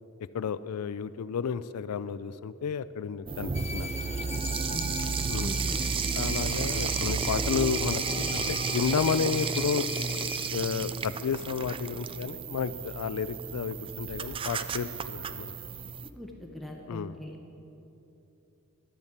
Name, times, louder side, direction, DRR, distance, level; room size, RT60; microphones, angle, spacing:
voice 1, 0.3-3.9 5.3-5.6 6.1-10.1 10.5-15.5 16.9-17.2, left 6 dB, 90° left, 15 dB, 0.4 m, -32 dB
sound 1, 3.3-16.1, right 5 dB, 25° right, 0.3 m, -32 dB
sound 2, 3.5-10.5, left 6 dB, 30° left, 0.6 m, -40 dB
voice 2, 4.7-5.8 16.2-17.4, equal, ahead, 0 dB, 0.8 m, -42 dB
11.5 x 7.2 x 8.2 m, 2.9 s
head